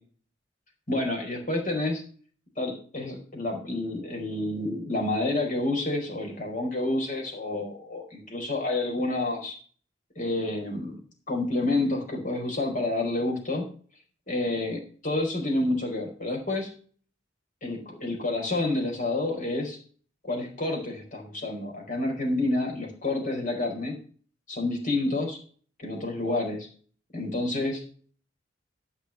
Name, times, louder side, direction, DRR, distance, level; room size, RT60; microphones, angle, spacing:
voice 1, 0.9-2.0 2.6-9.6 10.2-11.0 11.3-13.7 14.3-16.7 17.6-19.8 20.2-24.0 24.5-25.4 25.8-26.7 27.1-27.8, left 2 dB, 45° left, 2 dB, 4.8 m, -29 dB
13.5 x 5.8 x 5.9 m, 0.43 s
head